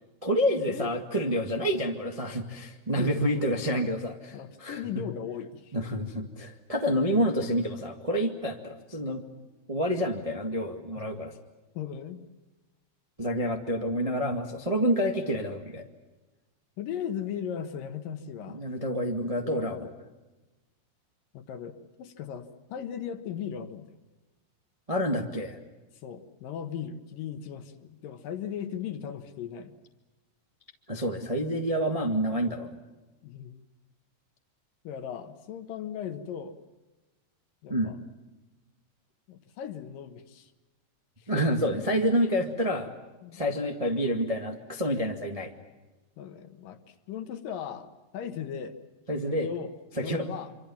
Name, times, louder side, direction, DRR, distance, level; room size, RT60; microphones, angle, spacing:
voice 1, 0.2-5.0 5.7-9.2 9.7-11.4 13.2-15.8 18.5-19.9 24.9-25.6 30.9-32.8 37.7-37.9 41.3-42.9 43.3-45.5 49.1-49.5 49.9-50.3, equal, 40° right, 3 dB, 0.5 m, -28 dB
voice 2, 3.0-3.4 3.8-3.9 4.3-5.7 11.0-11.2 11.7-12.2 16.8-18.6 19.4-19.9 21.3-23.9 26.0-29.7 33.2-33.6 34.8-36.6 37.6-38.0 39.3-40.5 41.2-41.3 43.2-43.5 46.2-47.9 48.1-48.8 49.4-49.7 50.0-50.5, left 8 dB, 65° left, 9 dB, 2.8 m, -37 dB
26.0 x 26.0 x 7.2 m, 1.1 s
omnidirectional pair, 4.6 m